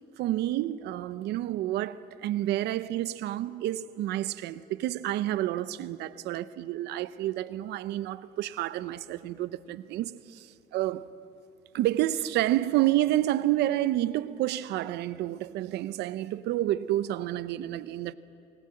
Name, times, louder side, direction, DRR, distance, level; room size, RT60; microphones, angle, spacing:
voice 1, 0.2-11.1 11.7-18.1, right 14 dB, 80° right, 0.8 m, -29 dB
27.0 x 19.0 x 7.8 m
cardioid pair, 110°, 17 cm